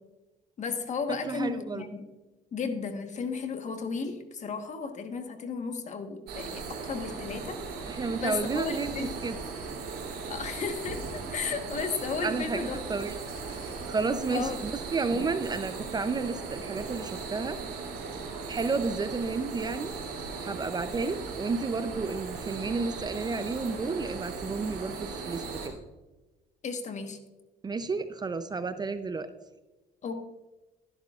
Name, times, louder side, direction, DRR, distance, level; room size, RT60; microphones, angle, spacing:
voice 1, 0.6-2.1 2.5-7.6 7.9-9.1 10.3-12.8 14.3-14.6 26.6-27.2 30.0-30.1, left 5 dB, 45° left, 6 dB, 1.3 m, -34 dB
voice 2, 1.3-1.8 7.9-9.4 12.2-13.1 13.6-17.6 18.5-19.9 20.4-25.7 27.6-29.3, right 4 dB, 25° right, 10 dB, 0.6 m, -31 dB
sound 1, 6.3-25.7, right 4 dB, 70° right, 3.1 m, -38 dB
Squeak / Writing, 8.8-9.8 10.4-11.3 11.7-14.0, left 1 dB, 85° left, 3.4 m, -47 dB
12.5 x 11.5 x 2.4 m, 1.1 s
cardioid pair, 110°, 17 cm